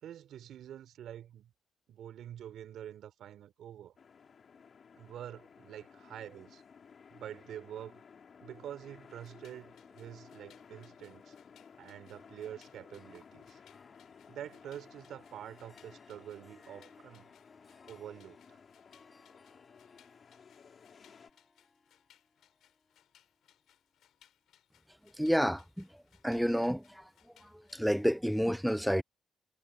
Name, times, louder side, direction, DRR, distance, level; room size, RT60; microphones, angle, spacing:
voice 1, 0.0-1.5 1.9-3.9 4.9-6.6 7.1-8.0 8.4-11.4 11.8-13.6 14.3-17.3 17.9-18.6, right 10 dB, 75° right, 4.2 m, -47 dB
sound 1, 4.0-21.3, left 6 dB, 45° left, 5.1 m, -57 dB
sound 2, 9.1-28.1, left 11 dB, 75° left, 7.5 m, -67 dB
Harp, 12.9-24.4, left 3 dB, 25° left, 7.6 m, -65 dB
voice 2, 25.2-25.9 26.2-27.0 27.7-29.0, equal, ahead, 0.4 m, -29 dB
cardioid pair, 90°, 0 cm